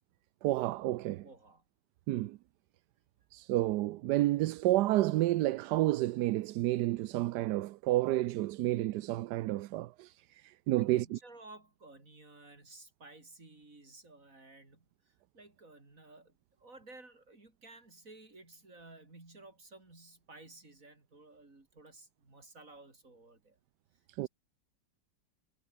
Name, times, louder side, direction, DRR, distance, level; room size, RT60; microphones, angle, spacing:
voice 1, 0.4-1.2 2.1-2.4 3.3-11.2 24.2-24.3, right 16 dB, 75° right, 1.1 m, -30 dB
voice 2, 1.2-1.6 10.7-23.6, right 2 dB, 45° right, 5.4 m, -55 dB
omnidirectional pair, 2.0 m